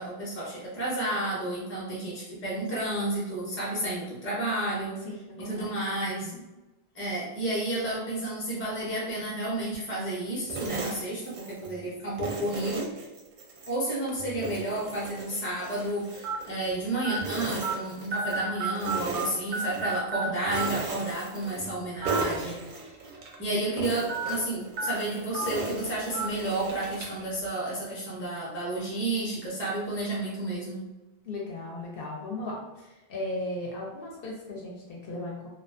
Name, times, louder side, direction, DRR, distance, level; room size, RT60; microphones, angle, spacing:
voice 1, 0.0-5.0 5.4-6.3 6.9-12.9 13.7-23.1 23.4-30.8, right 1 dB, 15° left, -5 dB, 0.5 m, -31 dB
voice 2, 5.0-5.7 6.2-6.4 31.2-35.5, left 2 dB, 65° left, -3 dB, 0.7 m, -37 dB
sound 1, 10.5-11.8 12.2-13.8 14.2-16.9 17.2-18.4 18.8-20.0 20.4-21.8 22.0-23.4 23.8-27.2, right 3 dB, 60° right, 0.6 m, -37 dB
sound 2, 14.1-14.3 15.0-15.1 16.2-16.4 17.0-17.2 17.6-17.7 18.1-19.3 19.5-20.2 20.5-20.7 21.9-22.2 22.6-22.7 24.1-24.3 24.8-24.9 25.3-25.5 26.1-26.3, right 5 dB, 85° right, 0.9 m, -31 dB
2.4 x 2.2 x 2.4 m, 1.1 s
omnidirectional pair, 1.1 m